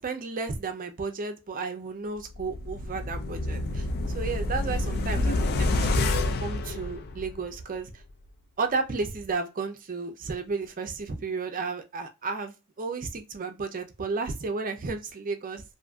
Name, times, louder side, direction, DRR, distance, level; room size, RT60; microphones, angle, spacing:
voice 1, 0.0-3.9 4.1-8.0 8.6-15.6, right 4 dB, 40° right, 0.5 m, -33 dB
sound 1, 2.3-7.5 7.9-8.0, left 2 dB, 45° left, 0.3 m, -28 dB
2.7 x 2.5 x 2.3 m
head